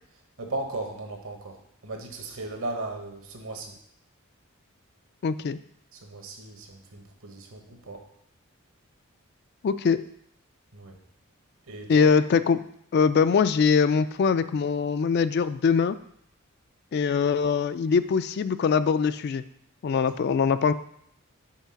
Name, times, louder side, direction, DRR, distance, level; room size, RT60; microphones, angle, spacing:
voice 1, 0.4-3.8 5.9-8.0 10.7-11.0 11.7-12.1, right 2 dB, 70° right, 3 dB, 1.3 m, -36 dB
voice 2, 5.2-5.6 9.6-10.0 11.9-12.6 12.9-16.0 16.9-19.4 19.8-20.7, left 6 dB, 50° left, 13 dB, 0.3 m, -22 dB
5.7 x 4.7 x 5.7 m, 0.70 s
head